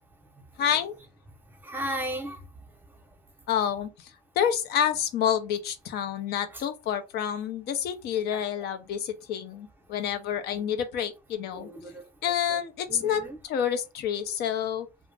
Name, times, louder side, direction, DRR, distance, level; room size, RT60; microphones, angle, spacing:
voice 1, 0.6-1.0 3.5-11.7 12.2-14.9, left 9 dB, 70° left, 0.5 m, -28 dB
voice 2, 1.6-2.7 6.5-6.6 8.1-8.7 10.5-10.6 11.5-12.6 12.9-13.4, equal, 10° right, 0.7 m, -37 dB
2.3 x 2.0 x 3.2 m
cardioid pair, 110°, 17 cm